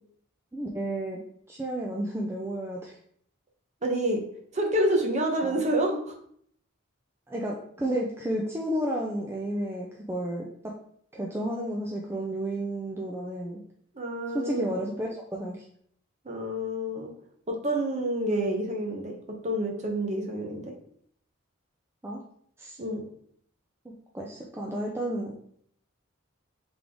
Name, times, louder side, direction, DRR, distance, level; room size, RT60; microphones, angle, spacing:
voice 1, 0.5-1.2 1.5-3.0 5.4-5.6 7.3-10.7 11.1-13.6 14.3-15.7 22.0-22.2 22.6-22.8 24.1-25.3, right 1 dB, 10° right, -2 dB, 0.4 m, -32 dB
voice 2, 3.8-4.2 4.5-6.1 13.9-14.7 16.2-17.1 17.5-19.1 19.4-20.7 22.8-23.0, right 1 dB, 35° right, 2 dB, 0.7 m, -28 dB
3.5 x 3.4 x 3.7 m, 0.65 s
head